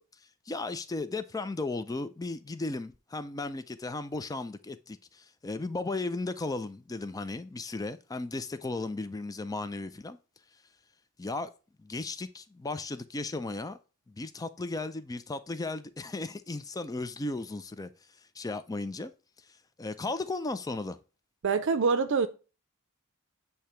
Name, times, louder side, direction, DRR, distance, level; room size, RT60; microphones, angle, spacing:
voice 1, 0.5-10.2 11.2-11.5 11.8-13.8 14.1-17.9 18.4-19.1 19.8-21.0, left 2 dB, 15° left, 0.4 m, -35 dB
voice 2, 21.4-22.3, right 5 dB, 60° right, 0.5 m, -25 dB
8.5 x 2.8 x 4.4 m
head